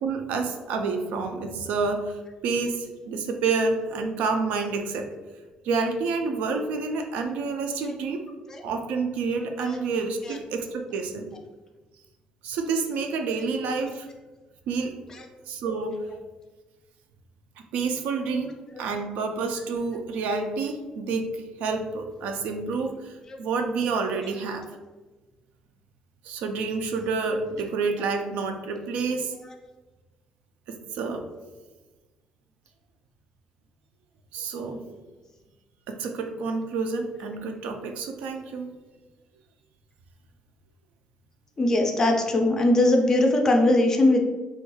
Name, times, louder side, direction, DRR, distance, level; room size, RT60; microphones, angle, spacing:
voice 1, 0.0-5.1 5.6-8.2 8.6-11.3 12.4-14.1 14.7-14.9 15.5-15.9 17.7-18.5 18.8-24.6 26.2-29.3 30.7-31.2 34.3-34.8 35.9-38.7, right 4 dB, 85° right, 5 dB, 0.4 m, -28 dB
voice 2, 41.6-44.3, left 1 dB, 20° left, 3 dB, 0.4 m, -21 dB
3.2 x 2.2 x 3.1 m, 1.2 s
cardioid pair, 170°, 2 cm